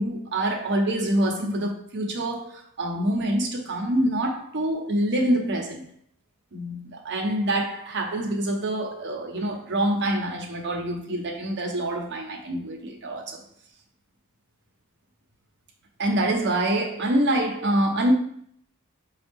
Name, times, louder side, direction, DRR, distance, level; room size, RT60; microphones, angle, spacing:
voice 1, 0.0-5.8 6.5-13.4 16.0-18.1, right 1 dB, 55° right, 0.7 m, -26 dB
5.0 x 2.3 x 3.4 m
head